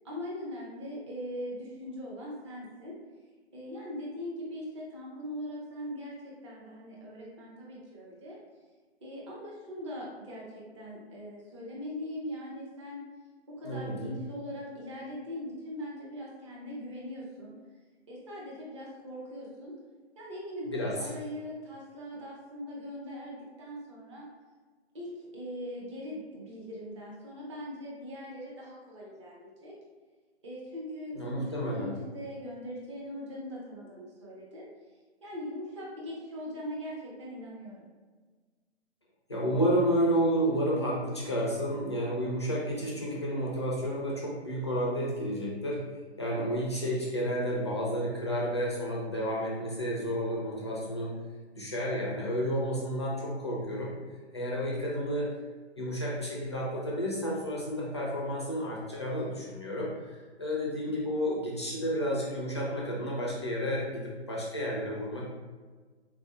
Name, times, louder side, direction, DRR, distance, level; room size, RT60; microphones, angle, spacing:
voice 1, 0.0-2.9 3.5-8.4 9.0-13.0 13.5-17.5 18.1-19.7 20.2-24.3 24.9-29.7 30.4-34.7 35.2-37.9 46.2-46.6, equal, 25° right, -4 dB, 0.6 m, -41 dB
voice 2, 13.6-14.2 20.7-21.1 31.1-32.0 39.3-45.8 46.2-51.1 51.5-54.0 54.3-55.3 55.8-65.2, equal, 25° left, -4 dB, 0.4 m, -31 dB
3.9 x 2.5 x 2.4 m, 1.4 s
hypercardioid pair, 150°, 34 cm